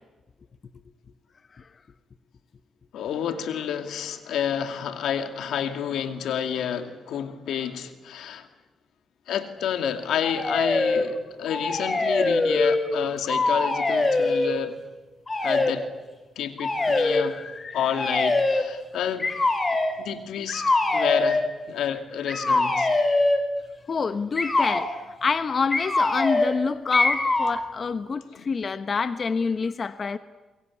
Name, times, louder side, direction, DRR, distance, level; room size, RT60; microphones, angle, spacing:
voice 1, 2.9-8.5 9.3-14.8 15.4-15.9 16.4-17.4 17.7-19.3 20.0-22.9 28.3-28.5, left 8 dB, 85° left, 7 dB, 2.4 m, -29 dB
sound 1, 10.2-11.1 11.5-13.0 13.2-14.5 15.3-15.7 16.6-17.2 17.9-18.7 19.2-20.0 20.5-21.4 22.3-23.5 24.3-24.9 25.7-26.6 26.9-27.6, left 2 dB, 25° left, 5.2 m, -23 dB
voice 2, 16.8-17.9 23.9-30.2, left 5 dB, 45° left, 10 dB, 1.1 m, -27 dB
25.0 x 22.5 x 9.9 m, 1.2 s
cardioid pair, 85°, 0 cm